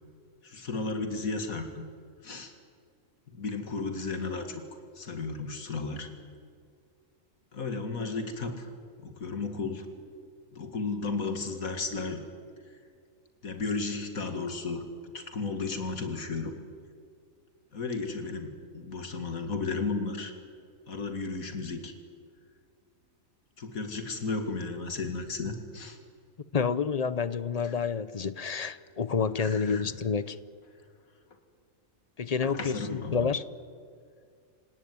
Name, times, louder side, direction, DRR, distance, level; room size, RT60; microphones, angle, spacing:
voice 1, 0.4-1.8 2.2-2.5 3.3-4.6 4.9-6.1 7.5-8.7 9.0-9.9 10.5-12.2 13.4-16.5 17.7-20.3 20.9-21.9 23.6-26.0 27.6-27.8 29.4-29.9 32.4-33.3, left 3 dB, 80° left, 2.5 m, -34 dB
voice 2, 26.5-30.4 32.2-32.8 33.1-33.4, left 6 dB, 40° left, 0.6 m, -29 dB
27.5 x 18.0 x 9.6 m
omnidirectional pair, 1.5 m